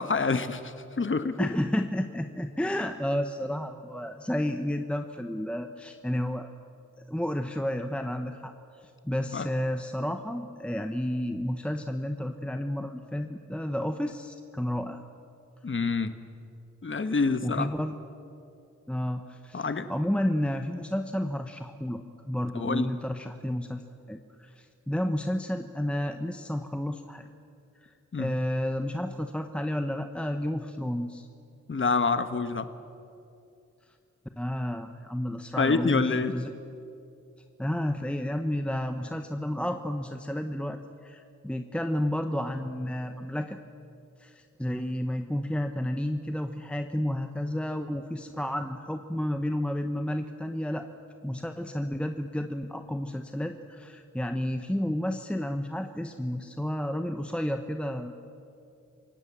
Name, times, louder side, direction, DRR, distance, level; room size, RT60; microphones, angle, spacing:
voice 1, 0.0-1.5 9.3-9.5 15.6-16.1 16.8-17.7 19.5-19.9 22.5-22.9 28.1-28.4 31.7-32.7 35.6-36.3, left 4 dB, 40° left, 10 dB, 1.2 m, -27 dB
voice 2, 1.4-6.5 7.1-8.5 8.8-15.0 17.4-18.0 18.9-23.8 24.1-27.3 27.8-27.9 28.2-31.3 34.4-36.5 37.6-43.6 44.2-50.9 51.2-58.2, left 1 dB, 5° left, 7 dB, 1.0 m, -31 dB
28.0 x 17.0 x 7.4 m, 2.6 s
cardioid pair, 60°, 30 cm